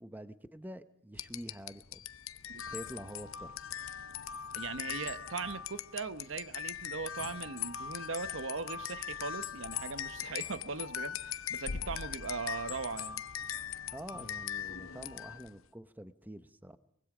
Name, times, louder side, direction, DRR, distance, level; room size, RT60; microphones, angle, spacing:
voice 1, 0.0-2.0 2.5-3.8 13.9-16.8, right 1 dB, 10° right, 0.8 m, -47 dB
sound 1, 1.1-15.6, left 8 dB, 80° left, 0.8 m, -40 dB
voice 2, 4.5-13.2, right 4 dB, 65° right, 0.9 m, -39 dB
24.0 x 22.0 x 5.0 m
head